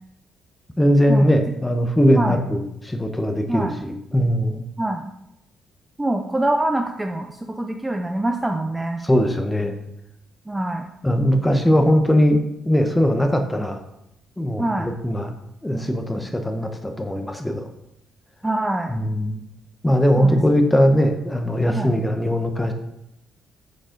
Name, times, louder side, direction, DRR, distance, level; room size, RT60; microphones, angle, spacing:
voice 1, 0.8-4.6 9.0-9.7 11.0-13.8 14.4-15.3 15.6-17.6 18.9-19.4 19.8-22.7, equal, 10° left, 6 dB, 1.0 m, -20 dB
voice 2, 4.8-5.1 6.0-9.0 10.5-10.8 14.6-14.9 18.4-18.9 20.2-20.4 21.7-22.0, right 1 dB, 15° right, 4 dB, 0.5 m, -24 dB
8.1 x 5.4 x 3.9 m, 0.82 s
cardioid pair, 90°, 0 cm